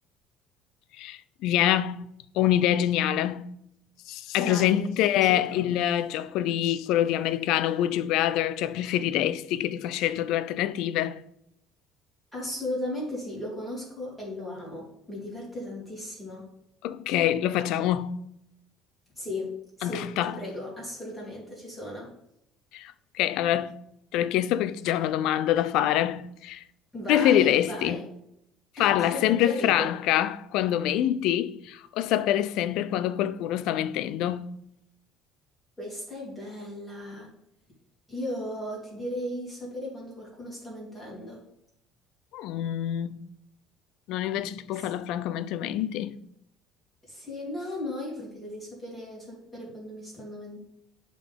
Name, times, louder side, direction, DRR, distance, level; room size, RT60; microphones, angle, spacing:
voice 1, 1.0-2.1 2.3-3.6 4.1-11.2 16.8-18.3 19.8-20.4 22.7-23.7 24.1-26.6 27.1-28.0 28.8-34.6 42.3-43.2 44.1-46.2, left 12 dB, 65° left, 0.4 m, -25 dB
voice 2, 4.4-4.8 5.3-5.7 12.3-16.5 19.2-22.1 26.9-28.1 28.8-29.9 35.8-37.3 38.1-41.4 44.8-44.9 47.1-50.6, left 1 dB, ahead, 2.8 m, -36 dB
11.0 x 3.8 x 3.6 m
cardioid pair, 170°, 0 cm